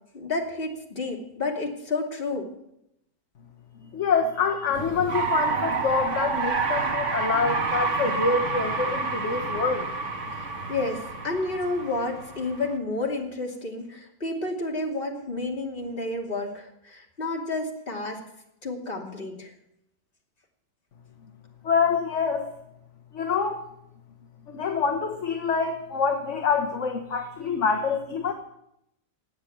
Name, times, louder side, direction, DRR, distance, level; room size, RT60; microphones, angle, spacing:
voice 1, 0.1-2.5 10.4-18.2 18.6-19.5, left 2 dB, 30° left, 0 dB, 2.8 m, -30 dB
voice 2, 3.8-9.9 21.6-22.5 23.1-23.6 24.5-28.3, left 5 dB, 45° left, 5 dB, 1.4 m, -26 dB
sound 1, 4.7-12.7, right 4 dB, 45° right, 1.8 m, -29 dB
19.0 x 7.9 x 9.2 m, 0.81 s
omnidirectional pair, 1.9 m